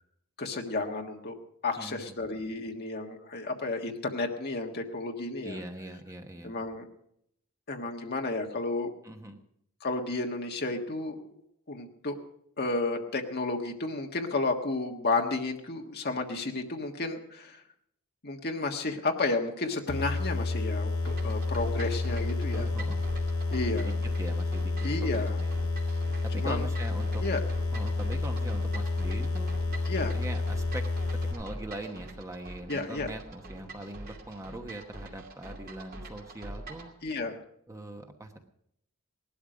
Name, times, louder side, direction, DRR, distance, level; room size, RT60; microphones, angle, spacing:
voice 1, 0.4-1.4 1.6-5.6 6.4-6.9 7.7-8.9 9.8-11.3 11.7-12.1 12.6-17.6 18.2-22.7 23.5-23.9 24.8-25.4 26.4-26.6 27.2-27.4 29.9-30.1 32.7-33.1 37.0-37.4, left 3 dB, 45° left, 3 dB, 1.5 m, -32 dB
voice 2, 1.8-2.2 5.4-6.6 9.0-9.4 22.5-23.1 23.7-25.7 26.2-27.2 27.7-29.5 30.1-30.9 31.2-36.9 37.7-38.4, right 1 dB, 15° right, 5 dB, 1.1 m, -41 dB
sound 1, 19.9-31.3, left 3 dB, 85° left, 6.0 m, -30 dB
sound 2, 21.0-36.9, right 1 dB, 45° right, 2.6 m, -44 dB
18.0 x 12.0 x 5.1 m, 0.72 s
head